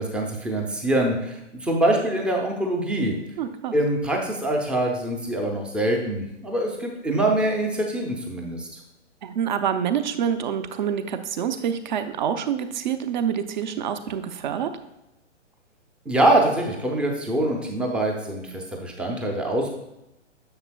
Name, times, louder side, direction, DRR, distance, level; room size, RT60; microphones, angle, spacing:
voice 1, 0.0-3.1 3.7-8.8 16.1-19.8, right 1 dB, 5° right, 1 dB, 0.5 m, -24 dB
voice 2, 3.4-3.7 9.2-14.7, right 8 dB, 40° right, 9 dB, 0.7 m, -27 dB
9.6 x 7.2 x 2.2 m, 0.91 s
figure-of-eight pair, 125°, 37 cm